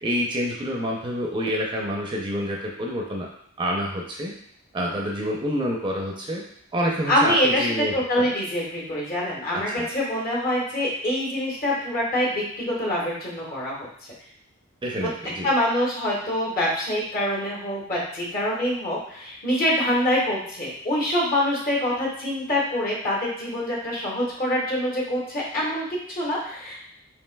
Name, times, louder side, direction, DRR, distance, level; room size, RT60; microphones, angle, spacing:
voice 1, 0.0-3.3 3.6-4.3 4.7-6.4 6.7-8.3 9.5-9.9 14.8-15.5, equal, 25° right, -1 dB, 0.5 m, -28 dB
voice 2, 7.1-7.7 7.9-13.9 15.0-15.1 15.4-26.8, left 1 dB, 45° left, -4 dB, 1.3 m, -25 dB
5.2 x 2.9 x 2.2 m, 0.65 s
head